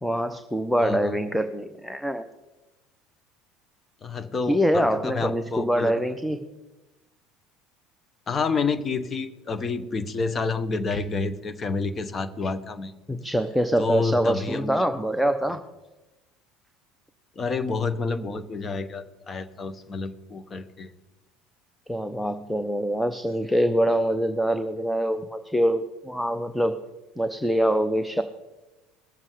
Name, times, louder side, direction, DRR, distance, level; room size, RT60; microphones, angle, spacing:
voice 1, 0.0-2.2 4.5-6.5 10.9-11.0 13.1-15.6 21.9-26.8 27.2-28.2, equal, 5° left, 9 dB, 0.7 m, -24 dB
voice 2, 0.8-1.2 4.0-6.0 8.3-12.9 13.8-14.8 17.4-20.9, left 4 dB, 30° left, 10 dB, 1.0 m, -29 dB
20.0 x 7.4 x 5.0 m, 1.1 s
figure-of-eight pair, 65°, 0 cm